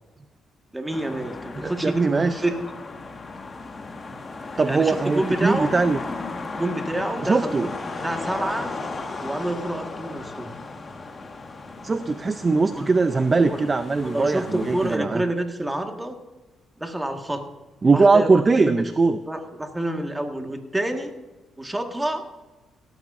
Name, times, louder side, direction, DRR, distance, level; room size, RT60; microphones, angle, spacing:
voice 1, 0.7-2.7 4.7-5.8 6.6-7.7 8.0-8.7 9.2-10.5 12.7-12.9 13.5-13.6 14.0-16.1 16.8-17.5 17.9-18.9 19.3-21.1 21.6-22.3, right 1 dB, 10° right, 4 dB, 1.7 m, -28 dB
sound 1, 0.9-15.0, left 3 dB, 35° left, 1.7 m, -35 dB
voice 2, 1.6-2.4 4.5-6.0 7.2-7.7 11.8-15.2 17.8-19.2, right 4 dB, 30° right, 10 dB, 0.6 m, -20 dB
17.0 x 13.5 x 2.6 m, 1.2 s
cardioid pair, 90°, 0 cm